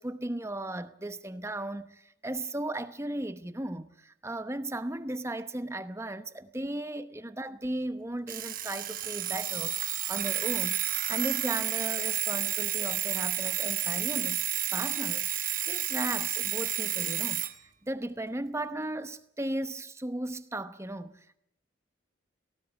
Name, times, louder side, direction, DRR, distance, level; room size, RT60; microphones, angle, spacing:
voice 1, 0.0-10.8 11.1-14.4 14.7-17.4 17.8-21.4, right 1 dB, 15° right, 0.9 m, -36 dB
Alarm, 8.3-17.5, right 12 dB, 45° right, 1.2 m, -31 dB
18.5 x 18.0 x 8.9 m
head